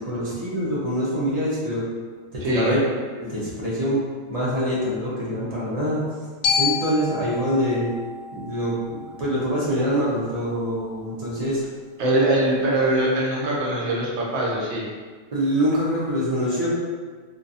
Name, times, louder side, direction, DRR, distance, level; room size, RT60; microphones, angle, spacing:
voice 1, 0.0-1.9 2.3-2.8 3.2-4.0 4.3-6.0 6.6-7.9 8.3-11.6 15.3-16.7, equal, 40° right, -7 dB, 0.6 m, -25 dB
voice 2, 2.4-2.7 12.0-14.9, right 1 dB, 80° right, -4 dB, 1.0 m, -22 dB
Glockenspiel, 6.4-10.6, left 5 dB, 55° left, 0.5 m, -29 dB
2.4 x 2.3 x 2.6 m, 1.5 s
omnidirectional pair, 1.2 m